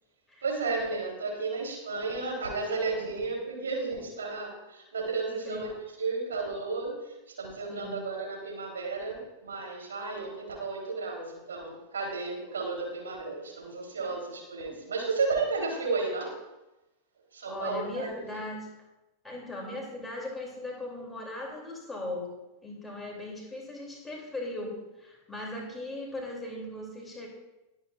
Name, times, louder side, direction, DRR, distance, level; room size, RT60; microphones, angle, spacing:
voice 1, 0.4-5.7 6.0-16.3 17.3-18.1, right 3 dB, 70° right, -1 dB, 3.9 m, -33 dB
voice 2, 7.7-8.1 14.7-14.8 17.5-18.7 19.2-22.3 22.6-27.3, left 1 dB, 5° left, -2 dB, 3.2 m, -38 dB
21.5 x 8.1 x 2.6 m, 1.0 s
figure-of-eight pair, 90°, 0 cm